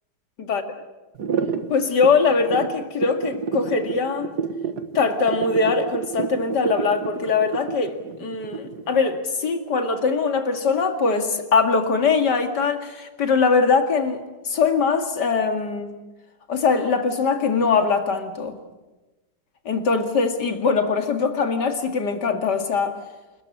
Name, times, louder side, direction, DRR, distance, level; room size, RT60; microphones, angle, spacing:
sound 1, 1.2-9.0, right 6 dB, 60° right, 2.0 m, -29 dB
voice 1, 1.7-4.3 4.9-15.9 16.5-18.6 19.7-23.0, left 4 dB, 60° left, 6 dB, 2.8 m, -22 dB
28.0 x 14.0 x 9.9 m, 1.1 s
omnidirectional pair, 2.0 m